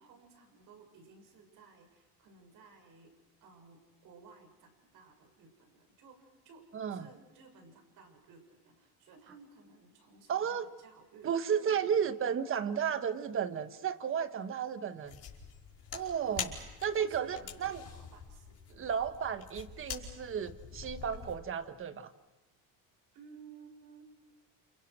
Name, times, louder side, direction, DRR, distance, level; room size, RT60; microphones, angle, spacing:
voice 1, 0.0-12.3 16.2-16.5 16.9-18.6 23.1-24.1, right 4 dB, 55° right, 4 dB, 7.0 m, -57 dB
voice 2, 6.7-7.1 10.3-10.7 11.2-15.2 15.9-16.5 16.8-17.8 18.7-22.1, right 7 dB, 35° right, 11 dB, 1.4 m, -33 dB
sound 1, 15.1-21.4, left 7 dB, 40° left, 5.1 m, -45 dB
29.5 x 28.5 x 6.4 m, 1.1 s
cardioid pair, 135°, 38 cm